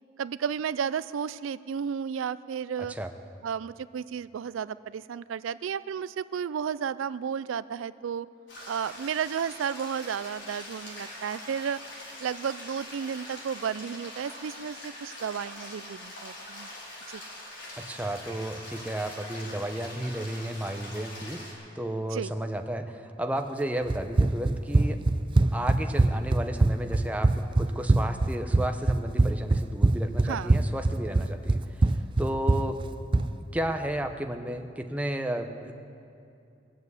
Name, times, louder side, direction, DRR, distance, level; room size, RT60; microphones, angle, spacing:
voice 1, 0.2-2.9 3.4-8.3 8.7-11.8 12.2-16.7 17.1-17.2 22.1-22.3 30.2-30.6, right 7 dB, 90° right, 16 dB, 0.4 m, -33 dB
sound 1, 8.5-21.5, left 1 dB, 70° left, 4.5 m, -43 dB
voice 2, 17.8-25.0 25.5-31.6 32.2-32.8 33.5-35.7, right 1 dB, 10° right, 5 dB, 0.8 m, -33 dB
Run, 23.9-33.3, right 2 dB, 25° right, 0.4 m, -23 dB
21.0 x 7.5 x 8.1 m, 2.6 s
head